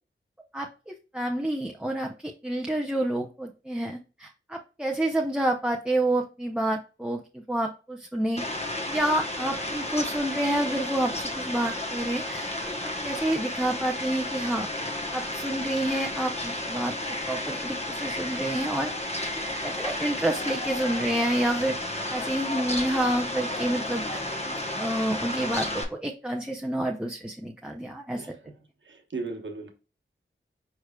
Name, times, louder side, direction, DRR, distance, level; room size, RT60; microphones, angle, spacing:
voice 1, 0.5-8.4 8.9-12.5 12.8-14.7 15.1-16.9 17.3-18.9 19.6-21.8 22.1-28.3, right 1 dB, 5° right, 0.6 m, -29 dB
Fowl, 8.4-25.8, left 1 dB, 30° left, 1.0 m, -32 dB
voice 2, 28.8-29.7, right 3 dB, 65° right, 1.1 m, -36 dB
4.7 x 4.6 x 2.3 m
wide cardioid pair, 70°, 21 cm